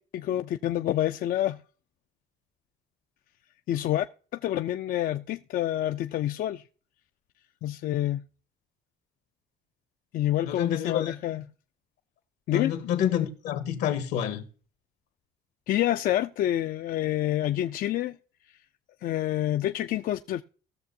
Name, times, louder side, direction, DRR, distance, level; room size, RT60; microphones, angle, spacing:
voice 1, 0.1-1.6 3.7-4.0 4.3-6.6 7.6-8.2 10.1-11.4 12.5-12.7 15.7-18.2 19.0-20.4, left 13 dB, 55° left, 0.4 m, -27 dB
voice 2, 10.4-11.4 12.5-14.4, left 10 dB, 80° left, 1.4 m, -29 dB
18.5 x 6.7 x 2.6 m
cardioid pair, 110°, 17 cm